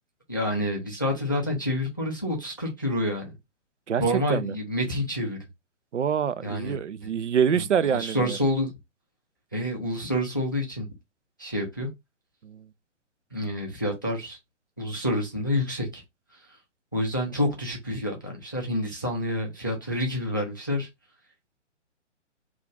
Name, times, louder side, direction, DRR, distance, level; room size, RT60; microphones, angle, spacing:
voice 1, 0.3-3.3 4.0-5.4 6.4-6.8 7.0-7.1 7.9-8.7 9.5-10.9 11.4-11.9 13.3-14.4 14.8-16.0 16.9-20.9, left 1 dB, 20° left, 0.3 m, -28 dB
voice 2, 3.9-4.5 5.9-8.4 12.4-12.7, right 7 dB, 75° right, 0.5 m, -26 dB
2.4 x 2.4 x 3.8 m
figure-of-eight pair, 130°, 37 cm